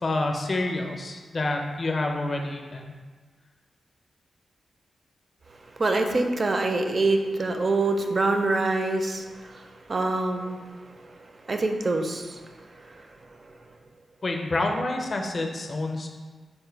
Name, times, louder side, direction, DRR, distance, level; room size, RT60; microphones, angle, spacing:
voice 1, 0.0-2.9 14.2-16.1, left 2 dB, 40° left, 2 dB, 0.5 m, -28 dB
voice 2, 5.8-10.7 11.5-12.4 12.8-13.0, right 2 dB, 35° right, 4 dB, 0.4 m, -25 dB
5.3 x 2.2 x 4.4 m, 1.4 s
wide cardioid pair, 130°, 0 cm